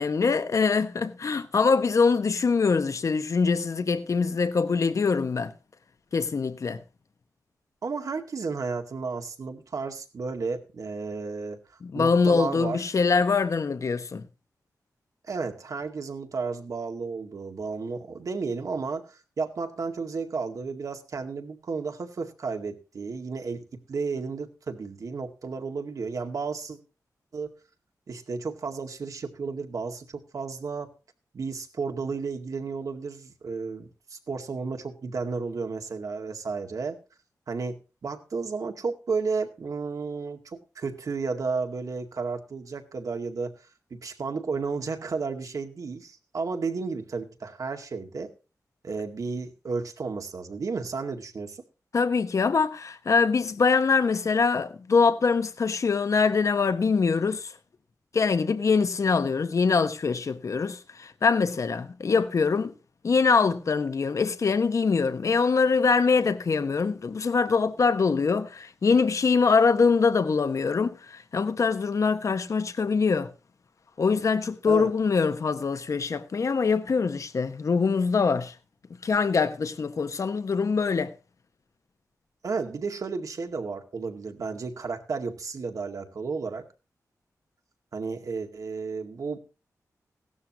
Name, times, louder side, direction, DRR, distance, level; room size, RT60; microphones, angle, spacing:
voice 1, 0.0-5.5 6.1-6.8 11.8-14.3 51.9-57.5 58.1-62.7 63.0-73.3 74.0-78.5 79.0-81.1, left 5 dB, 55° left, 1.2 m, -23 dB
voice 2, 7.8-11.6 11.9-12.8 15.3-26.8 27.3-27.5 28.1-30.9 31.3-37.0 37.5-37.8 38.0-48.3 48.8-51.6 74.7-74.9 82.4-86.7 87.9-89.4, right 4 dB, 60° right, 2.1 m, -33 dB
17.0 x 12.5 x 3.0 m
wide cardioid pair, 135°, 6 cm